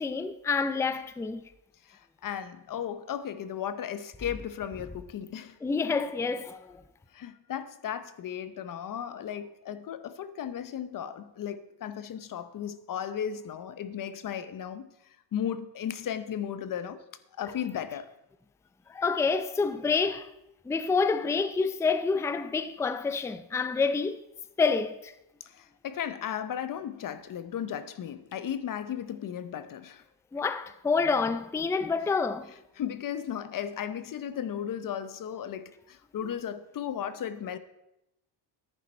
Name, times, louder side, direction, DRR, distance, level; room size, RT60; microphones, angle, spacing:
voice 1, 0.0-1.4 5.6-6.8 18.9-20.3 20.7-24.2 24.6-25.1 30.3-32.5, left 4 dB, 5° left, 0.4 m, -28 dB
voice 2, 1.8-5.6 7.1-17.0 17.4-18.1 25.4-30.0 32.8-37.6, left 9 dB, 45° left, 0.8 m, -35 dB
14.0 x 10.5 x 4.3 m
cardioid pair, 140°, 46 cm